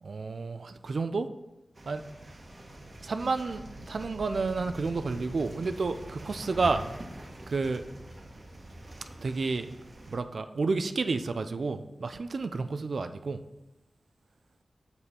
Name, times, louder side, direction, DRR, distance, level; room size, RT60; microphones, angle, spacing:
voice 1, 0.0-1.3 1.9-2.0 3.0-6.8 7.5-7.8 9.2-9.7 10.1-13.4, right 4 dB, 65° right, 9 dB, 0.4 m, -30 dB
sound 1, 1.7-10.2, right 1 dB, 40° right, 1.2 m, -44 dB
7.0 x 6.8 x 4.3 m, 0.97 s
wide cardioid pair, 85°, 0 cm